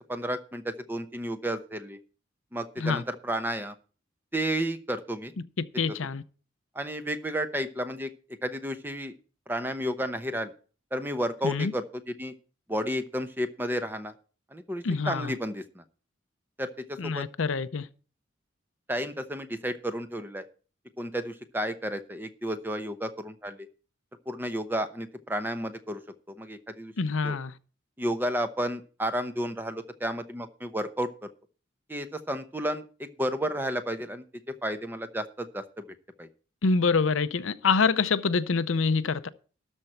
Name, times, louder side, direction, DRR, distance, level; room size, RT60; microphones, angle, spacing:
voice 1, 0.0-2.0 2.5-3.7 4.3-5.3 6.7-8.1 8.4-9.1 9.5-10.5 10.9-12.3 12.7-14.1 14.5-15.8 16.6-17.2 18.9-20.4 21.0-23.7 24.3-26.0 26.4-26.9 27.2-27.4 28.0-31.3 31.9-34.2 34.6-35.8 36.2-36.3, equal, 10° right, 0.8 m, -32 dB
voice 2, 5.8-6.2 11.4-11.7 14.8-15.3 17.0-17.9 27.0-27.5 36.6-39.3, left 4 dB, 80° left, 0.6 m, -26 dB
13.0 x 4.4 x 7.9 m
head